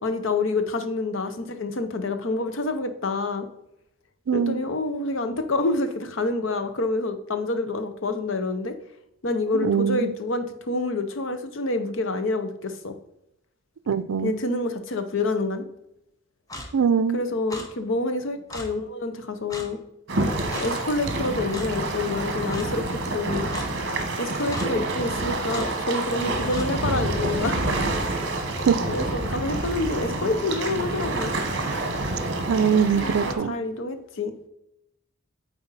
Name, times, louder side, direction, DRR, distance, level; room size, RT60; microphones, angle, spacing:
voice 1, 0.0-3.5 4.3-8.7 9.2-13.0 14.2-15.7 17.1-19.8 20.5-23.5 24.2-27.6 28.9-31.3 32.9-34.5, left 2 dB, 70° left, 9 dB, 0.7 m, -27 dB
voice 2, 4.3-4.6 9.5-10.1 13.9-14.4 16.7-17.2 28.7-28.8 32.5-33.5, right 7 dB, 85° right, 14 dB, 0.4 m, -22 dB
Clock, 16.5-16.7 17.5-17.7 18.5-18.7 19.5-19.7 20.5-20.7 21.5-21.7 22.5-22.7 23.5-23.7 24.5-24.7 25.5-25.7 26.5-26.7, left 1 dB, 15° left, 0.7 m, -36 dB
sound 1, 20.1-33.3, right 2 dB, 55° right, 1.2 m, -28 dB
8.0 x 4.2 x 4.0 m, 0.81 s
head